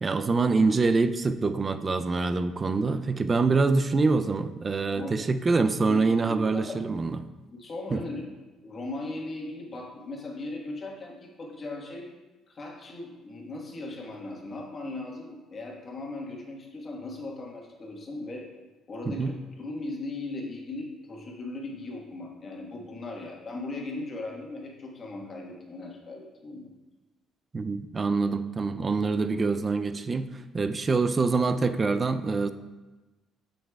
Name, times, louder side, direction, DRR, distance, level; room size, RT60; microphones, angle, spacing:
voice 1, 0.0-7.2 7.9-8.0 19.1-19.3 27.5-32.5, right 4 dB, 30° right, 10 dB, 0.4 m, -25 dB
voice 2, 5.9-6.8 7.5-8.3 8.6-12.1 12.5-18.5 18.9-26.7, left 2 dB, 40° left, 0 dB, 1.4 m, -38 dB
7.8 x 6.5 x 2.3 m, 1.2 s
cardioid pair, 100°, 0 cm